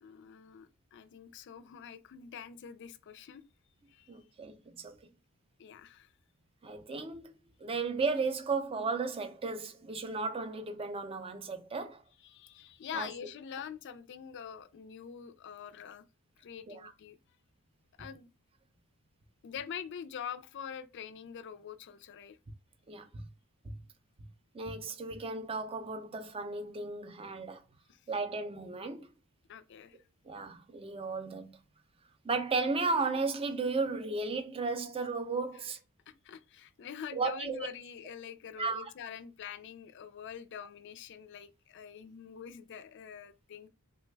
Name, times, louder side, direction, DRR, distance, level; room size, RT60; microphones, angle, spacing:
voice 1, 0.0-3.4 3.9-4.1 5.6-6.1 12.2-16.0 16.4-17.2 18.0-18.3 19.4-22.4 27.9-28.0 29.5-30.0 36.1-43.7, left 8 dB, 55° left, 0.4 m, -45 dB
voice 2, 4.1-4.9 6.6-7.3 7.6-12.0 12.9-13.1 16.7-16.9 22.9-23.2 23.6-23.7 24.5-27.6 28.1-29.1 30.2-31.6 32.2-35.8 37.1-37.6 38.6-38.9, right 4 dB, 25° right, 0.4 m, -34 dB
3.2 x 2.1 x 3.2 m
head